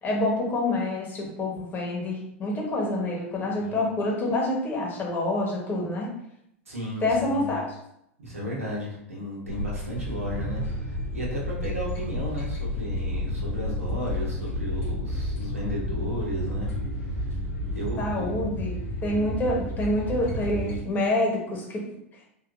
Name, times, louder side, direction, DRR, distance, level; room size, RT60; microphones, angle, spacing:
voice 1, 0.0-6.1 7.0-7.7 18.0-18.7 19.0-21.8, left 1 dB, 25° left, -2 dB, 1.1 m, -27 dB
voice 2, 6.7-7.5 8.2-16.7 17.0-17.3 17.7-18.3, equal, 85° right, -4 dB, 1.1 m, -34 dB
sound 1, 9.5-20.8, left 1 dB, 70° left, 1.2 m, -31 dB
3.8 x 2.4 x 2.5 m, 0.77 s
hypercardioid pair, 95°, 7 cm